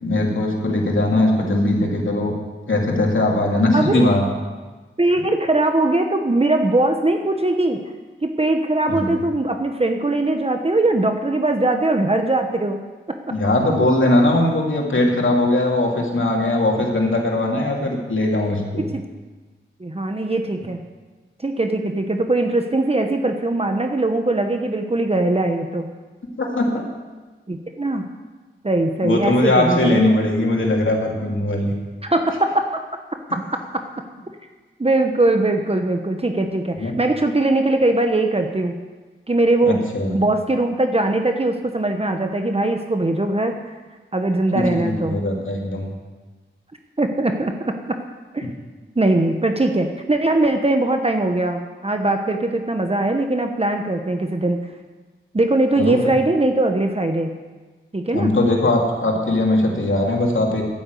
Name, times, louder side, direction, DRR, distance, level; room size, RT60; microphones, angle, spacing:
voice 1, 0.0-2.3 2.7-4.2 8.9-9.1 13.3-18.9 26.4-26.8 29.0-31.7 36.8-36.9 39.6-40.1 44.5-45.9 55.8-56.1 58.1-60.6, left 1 dB, 70° left, -1 dB, 2.9 m, -20 dB
voice 2, 3.7-4.1 5.0-7.8 8.2-12.8 13.1-13.2 18.8-19.0 19.8-20.8 21.4-25.9 27.5-28.0 28.6-30.1 32.0-32.8 34.8-38.8 39.3-39.8 40.1-43.7 44.1-45.2 47.0-48.0 48.3-48.5 49.0-54.6 55.3-57.3 57.9-58.3, right 2 dB, 30° right, 5 dB, 1.1 m, -20 dB
11.5 x 9.7 x 8.3 m, 1.3 s
wide cardioid pair, 70°, 21 cm